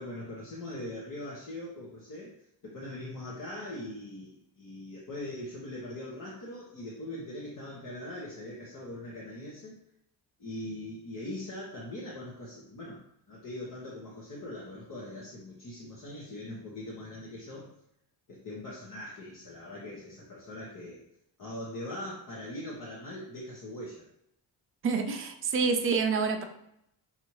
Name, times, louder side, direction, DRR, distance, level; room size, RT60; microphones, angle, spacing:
voice 1, 0.0-2.4 2.6-9.8 10.4-13.0 13.3-17.7 18.3-21.0 21.4-24.0, left 1 dB, 50° left, -5 dB, 1.0 m, -41 dB
voice 2, 24.8-26.4, right 5 dB, 30° right, 4 dB, 0.5 m, -27 dB
5.7 x 2.6 x 3.1 m, 0.77 s
cardioid pair, 140°, 43 cm